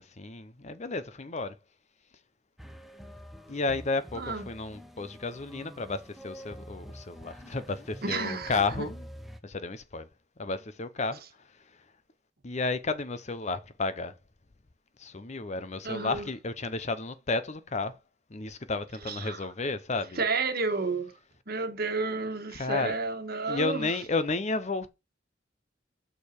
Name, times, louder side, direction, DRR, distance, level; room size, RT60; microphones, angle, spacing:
voice 1, 0.0-1.6 3.5-9.1 9.4-10.1 10.4-11.7 12.4-14.1 15.0-18.0 18.3-20.2 22.5-23.0 23.5-24.9, left 3 dB, 40° left, 0.8 m, -32 dB
sound 1, 2.6-9.4, equal, ahead, 0.9 m, -47 dB
voice 2, 4.1-4.5 8.0-8.9 15.8-16.3 19.1-19.4 20.2-21.1 21.5-23.9, right 4 dB, 55° right, 1.5 m, -31 dB
6.7 x 5.1 x 4.5 m
head